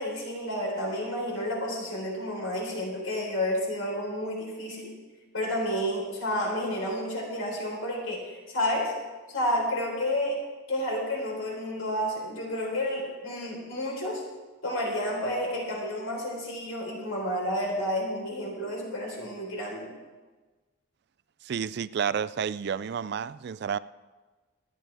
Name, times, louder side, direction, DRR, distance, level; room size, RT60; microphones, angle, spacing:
voice 1, 0.0-4.9 5.3-8.9 9.3-10.4 10.7-14.2 14.6-19.9, left 1 dB, 80° left, -1 dB, 4.0 m, -30 dB
voice 2, 21.4-23.8, right 7 dB, 50° right, 16 dB, 0.3 m, -30 dB
26.0 x 8.9 x 3.4 m, 1.3 s
head